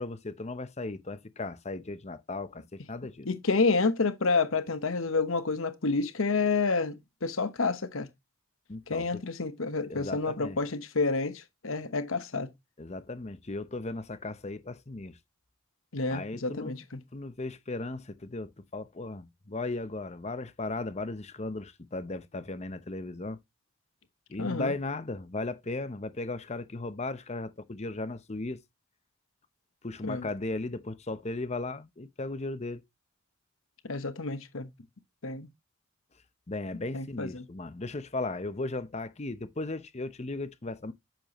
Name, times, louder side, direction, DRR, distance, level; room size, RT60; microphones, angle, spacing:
voice 1, 0.0-3.3 8.7-9.2 9.9-10.6 12.8-15.2 16.1-16.8 17.1-23.4 24.3-28.6 29.8-32.8 36.5-40.9, left 2 dB, 30° left, 0.8 m, -36 dB
voice 2, 3.3-7.0 7.2-8.1 8.9-12.5 15.9-16.8 24.4-24.7 30.0-30.3 33.8-34.7 35.2-35.5 36.9-37.4, left 4 dB, 70° left, 1.0 m, -29 dB
9.0 x 6.8 x 3.0 m
head